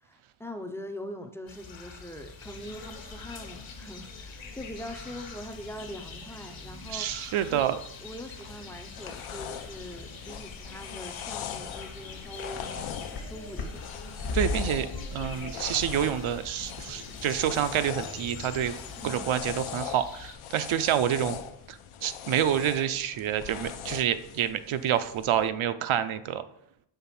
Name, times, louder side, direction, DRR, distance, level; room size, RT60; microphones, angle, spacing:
voice 1, 0.0-7.7 8.0-13.8 19.0-19.3, equal, 5° left, 5 dB, 0.3 m, -42 dB
sound 1, 1.5-20.4, left 4 dB, 65° left, 1.3 m, -47 dB
sound 2, 2.4-19.1, left 3 dB, 45° left, 0.9 m, -41 dB
voice 2, 6.9-7.8 14.3-14.9 15.1-18.7 19.0-21.4 21.7-26.4, right 10 dB, 75° right, 11 dB, 0.5 m, -28 dB
sound 3, 8.5-25.5, left 9 dB, 80° left, 0.6 m, -41 dB
5.8 x 3.4 x 5.8 m, 0.75 s
wide cardioid pair, 175°, 49 cm